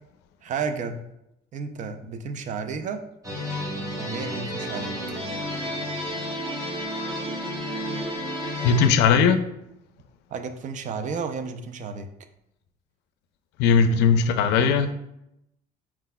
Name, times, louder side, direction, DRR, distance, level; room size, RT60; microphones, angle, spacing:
voice 1, 0.4-1.0 1.5-3.1 3.9-5.0 10.3-12.1, right 5 dB, 50° right, 8 dB, 0.4 m, -32 dB
sound 1, 3.2-8.9, equal, 20° right, 1.0 m, -31 dB
voice 2, 8.6-9.4 13.6-14.9, left 6 dB, 85° left, 9 dB, 0.4 m, -19 dB
4.5 x 3.9 x 2.2 m, 0.84 s
cardioid pair, 110°, 17 cm